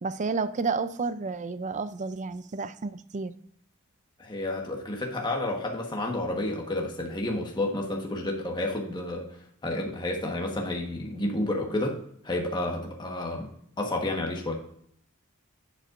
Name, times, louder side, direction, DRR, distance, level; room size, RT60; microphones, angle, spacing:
voice 1, 0.0-3.3, right 4 dB, 35° right, 13 dB, 0.4 m, -31 dB
voice 2, 4.2-13.5 13.8-14.5, left 1 dB, 20° left, 0 dB, 1.3 m, -30 dB
10.0 x 8.0 x 2.5 m, 0.67 s
head